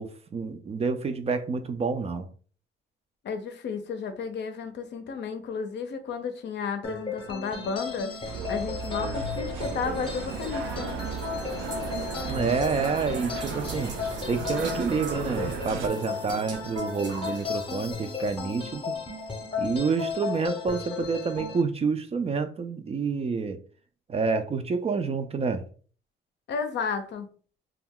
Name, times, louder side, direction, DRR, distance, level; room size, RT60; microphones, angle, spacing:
voice 1, 0.0-2.3 12.3-13.9 14.3-18.9 19.6-23.6 24.1-25.6, right 5 dB, 30° right, 0.4 m, -28 dB
voice 2, 3.2-8.2 8.5-11.0 26.5-27.3, left 5 dB, 65° left, 0.5 m, -33 dB
sound 1, 6.8-21.6, left 5 dB, 25° left, 0.7 m, -35 dB
sound 2, 8.2-15.9, right 5 dB, 85° right, 0.5 m, -35 dB
sound 3, 8.8-18.4, right 3 dB, 65° right, 0.8 m, -42 dB
2.3 x 2.1 x 3.5 m
cardioid pair, 90°, 20 cm